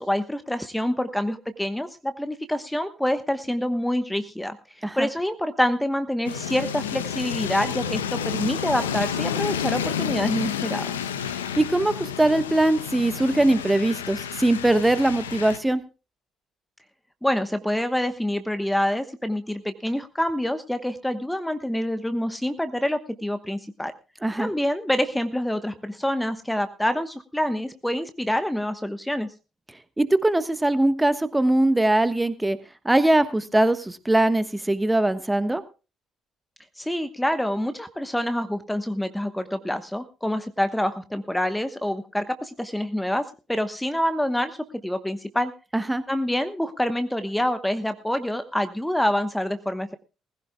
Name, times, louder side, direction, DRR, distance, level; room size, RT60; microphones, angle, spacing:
voice 1, 0.0-11.0 17.2-23.9 24.4-29.3 36.8-44.6 44.8-45.5 46.1-50.0, left 1 dB, 5° left, 10 dB, 1.1 m, -26 dB
sound 1, 6.2-15.6, left 8 dB, 85° left, 0.8 m, -30 dB
voice 2, 11.6-15.8 24.2-24.5 30.0-32.6 32.8-35.6 45.7-46.0, right 1 dB, 15° right, 11 dB, 1.3 m, -21 dB
20.0 x 15.5 x 2.3 m, 0.33 s
hypercardioid pair, 50°, 0 cm